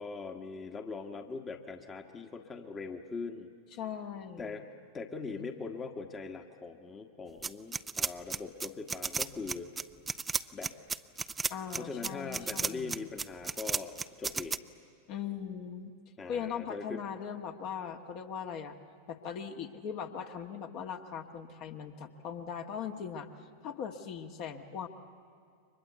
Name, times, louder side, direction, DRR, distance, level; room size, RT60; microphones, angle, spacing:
voice 1, 0.0-3.5 4.4-4.6 4.9-9.7 10.5-10.7 11.8-14.6 16.2-17.0, left 4 dB, 20° left, 5 dB, 1.4 m, -41 dB
voice 2, 3.7-4.6 11.5-12.9 15.1-15.9 16.3-18.7 19.1-23.3 23.6-24.9, left 7 dB, 45° left, 4 dB, 1.5 m, -39 dB
sound 1, 7.4-14.6, right 4 dB, 15° right, 0.6 m, -33 dB
30.0 x 24.5 x 8.1 m, 2.4 s
figure-of-eight pair, 90°, 0 cm